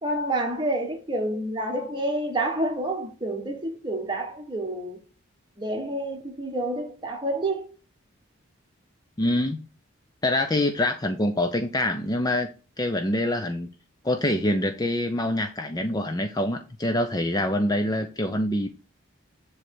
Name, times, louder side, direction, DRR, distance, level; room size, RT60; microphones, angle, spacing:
voice 1, 0.0-5.0 5.6-7.7, right 1 dB, 20° right, 1.5 m, -28 dB
voice 2, 9.2-9.6 10.2-12.5 12.8-13.7 14.0-18.7, left 1 dB, 20° left, 0.6 m, -25 dB
7.4 x 3.3 x 6.1 m
head